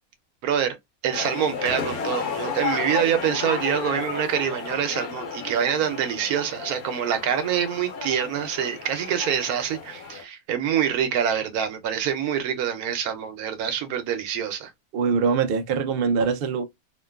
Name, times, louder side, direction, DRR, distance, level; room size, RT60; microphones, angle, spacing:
voice 1, 0.4-0.8 1.0-14.7, right 9 dB, 90° right, 1.1 m, -25 dB
sound 1, 1.1-10.2, left 6 dB, 80° left, 1.3 m, -33 dB
voice 2, 14.9-16.6, right 5 dB, 75° right, 0.5 m, -23 dB
2.9 x 2.2 x 2.2 m
omnidirectional pair, 1.5 m